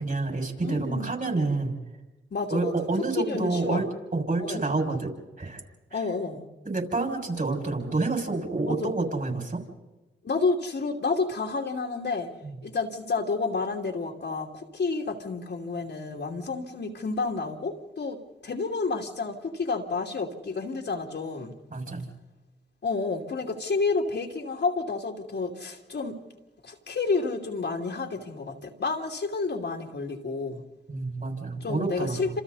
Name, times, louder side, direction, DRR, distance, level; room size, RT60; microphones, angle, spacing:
voice 1, 0.0-1.7 2.5-3.8 4.1-5.6 5.9-6.0 6.6-9.6 12.4-12.5 21.7-22.0 30.9-32.2, right 3 dB, 40° right, 2 dB, 6.5 m, -28 dB
voice 2, 0.6-1.2 2.3-2.7 3.2-3.8 4.4-4.7 5.9-6.5 8.6-8.9 10.2-12.3 12.6-21.5 22.8-26.2 26.6-30.6 31.6-32.4, left 4 dB, 60° left, -1 dB, 2.8 m, -30 dB
28.0 x 27.0 x 4.2 m, 1.1 s
supercardioid pair, 45°, 21 cm